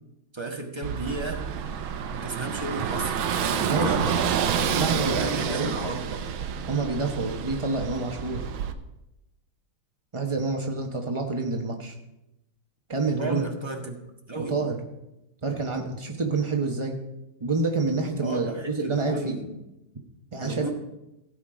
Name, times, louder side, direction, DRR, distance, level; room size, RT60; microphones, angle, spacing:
voice 1, 0.3-1.4 2.1-3.1 3.5-4.2 4.7-6.2 13.2-13.9 14.3-14.5 18.2-19.5 20.4-20.7, right 2 dB, 15° right, 1 dB, 1.3 m, -33 dB
Car passing by / Engine, 0.8-8.7, right 7 dB, 75° right, 1.6 m, -28 dB
voice 2, 3.6-4.1 4.8-5.7 6.7-8.4 10.1-11.9 12.9-13.4 14.3-14.8 15.4-17.0 17.4-19.3 20.3-20.7, right 3 dB, 45° right, 2 dB, 0.3 m, -28 dB
16.0 x 8.2 x 5.0 m, 0.92 s
omnidirectional pair, 2.3 m